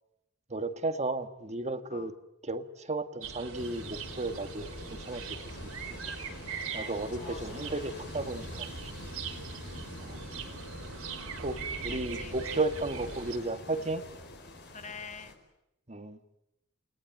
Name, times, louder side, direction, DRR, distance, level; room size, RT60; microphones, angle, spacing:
voice 1, 0.5-2.1 2.4-5.2 6.7-8.7 10.0-10.2 11.4-14.0 15.9-16.2, right 2 dB, 30° right, 9 dB, 1.5 m, -34 dB
sound 1, 3.2-13.4, right 6 dB, 75° right, 3.5 m, -42 dB
sound 2, 3.5-15.3, left 1 dB, 55° left, 4.9 m, -44 dB
voice 2, 6.8-7.7 9.3-10.0 11.9-12.4 14.7-15.4, left 5 dB, 35° left, 9 dB, 1.7 m, -47 dB
30.0 x 18.5 x 9.0 m, 0.88 s
head